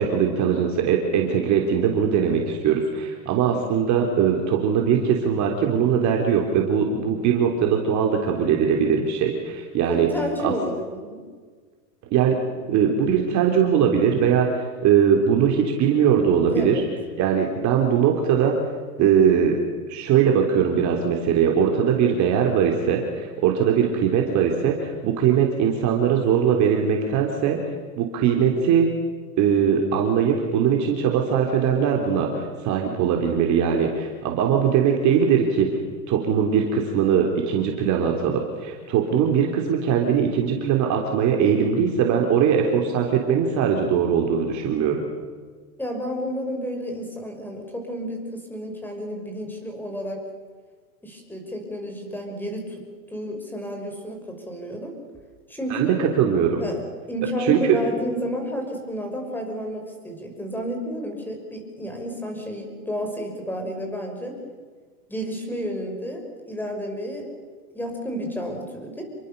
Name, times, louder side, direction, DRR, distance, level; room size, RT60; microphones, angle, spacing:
voice 1, 0.0-10.1 10.4-10.5 12.1-12.4 12.7-16.8 17.2-18.5 19.0-19.6 19.9-27.6 28.0-28.9 29.4-35.7 36.1-45.0 55.7-56.6 57.4-57.6, right 7 dB, 35° right, 1 dB, 3.6 m, -21 dB
voice 2, 9.9-11.2 16.5-16.8 45.8-50.2 51.0-52.8 53.1-55.0 55.5-55.9 56.6-56.8 57.1-64.4 65.1-67.3 67.7-69.0, equal, 5° left, 3 dB, 5.9 m, -31 dB
28.5 x 23.5 x 6.9 m, 1.5 s
supercardioid pair, 140°, 49 cm